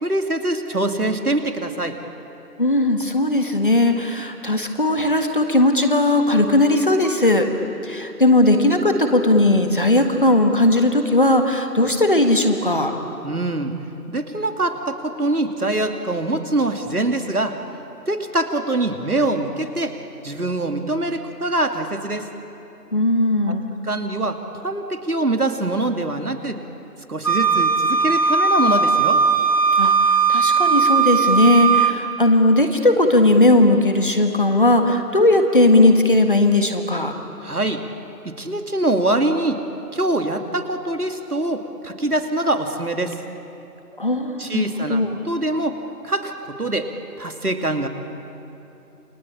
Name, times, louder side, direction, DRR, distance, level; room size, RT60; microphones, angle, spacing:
voice 1, 0.0-2.0 13.2-13.7 14.1-17.6 18.1-20.0 20.2-22.3 23.5-23.6 23.8-26.6 27.1-29.2 37.4-37.8 38.2-39.6 39.9-43.2 44.4-45.8 46.0-46.9 47.2-47.9, right 2 dB, 65° right, 6 dB, 2.7 m, -24 dB
voice 2, 2.6-7.5 7.8-12.9 22.9-23.8 29.8-37.1 44.0-44.6 44.9-45.1, left 1 dB, 30° left, 5 dB, 1.8 m, -17 dB
Wind instrument woodwind instrument, 27.2-32.0, right 5 dB, 55° left, 2.1 m, -18 dB
29.0 x 24.0 x 8.7 m, 2.8 s
figure-of-eight pair, 165°, 48 cm